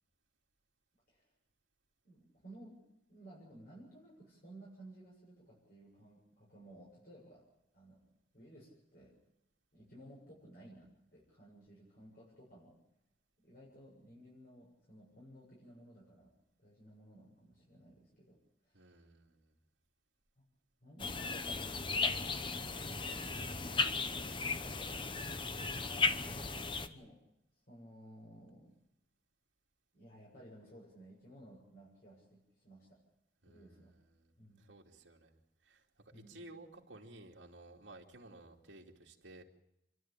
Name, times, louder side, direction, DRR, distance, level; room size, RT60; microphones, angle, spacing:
voice 1, 2.0-2.8 3.1-7.4 7.7-8.0 8.3-9.2 9.7-12.8 13.4-16.3 16.6-18.4 18.6-19.0 20.4-20.5 20.8-22.2 26.8-27.2 27.7-28.8 29.9-33.0 33.5-33.9 34.4-34.7 36.1-36.4, right 1 dB, 50° left, -5 dB, 7.4 m, -57 dB
voice 2, 18.7-19.5 33.4-39.4, right 2 dB, 70° right, -1 dB, 2.7 m, -56 dB
sound 1, 21.0-26.9, left 4 dB, 25° left, 1.0 m, -36 dB
28.5 x 12.5 x 8.9 m, 0.86 s
head